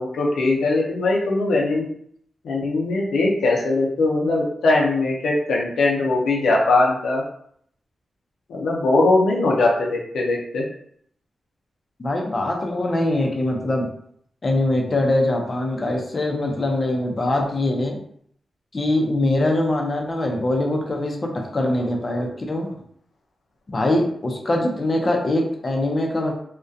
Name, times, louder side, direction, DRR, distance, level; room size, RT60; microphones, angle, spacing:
voice 1, 0.0-1.9 2.4-7.2 8.5-10.6, left 2 dB, 90° left, -2 dB, 0.5 m, -20 dB
voice 2, 12.0-13.9 14.4-18.0 18.7-22.7 23.7-26.3, left 1 dB, 40° left, 1 dB, 0.5 m, -22 dB
2.3 x 2.1 x 2.5 m, 0.66 s
cardioid pair, 75°, 0 cm